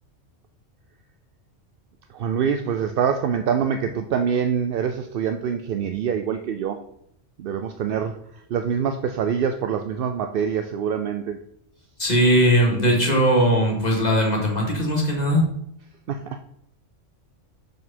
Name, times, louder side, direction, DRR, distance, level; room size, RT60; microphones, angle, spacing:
voice 1, 2.1-6.8 7.4-8.1 8.5-11.4 16.1-16.4, right 7 dB, 60° right, 7 dB, 0.6 m, -25 dB
voice 2, 12.0-15.4, equal, 35° left, -2 dB, 2.4 m, -19 dB
6.6 x 6.4 x 4.3 m, 0.75 s
omnidirectional pair, 1.3 m